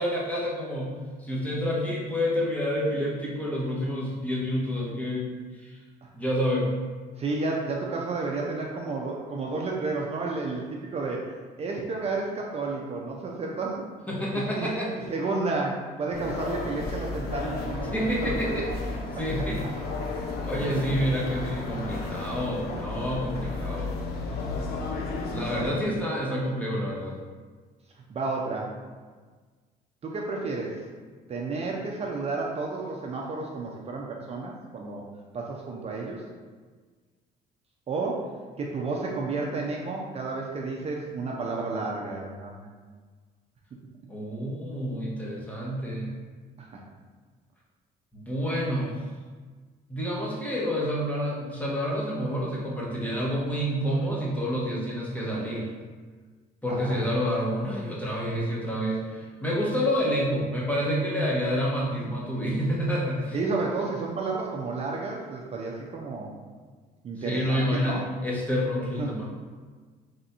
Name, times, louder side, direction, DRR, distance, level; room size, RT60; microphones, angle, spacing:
voice 1, 0.0-5.3 5.6-5.7 6.1-6.7 14.1-14.9 17.9-18.7 19.1-19.6 20.5-23.9 25.3-27.2 44.1-46.1 48.1-49.0 49.9-55.7 56.6-63.4 67.2-68.0 68.2-69.3, equal, 10° left, -5 dB, 0.9 m, -28 dB
voice 2, 7.2-11.2 11.6-13.8 14.3-18.6 24.2-24.7 25.0-25.2 25.5-25.8 28.1-28.8 30.0-30.8 31.3-35.1 35.3-36.2 37.9-42.8 46.6-46.8 56.7-57.0 63.3-66.3 67.0-68.0 69.0-69.2, right 3 dB, 40° right, -1 dB, 0.5 m, -32 dB
sound 1, 16.1-25.7, left 3 dB, 65° left, 0.7 m, -33 dB
3.4 x 2.5 x 4.2 m, 1.5 s
cardioid pair, 110°, 17 cm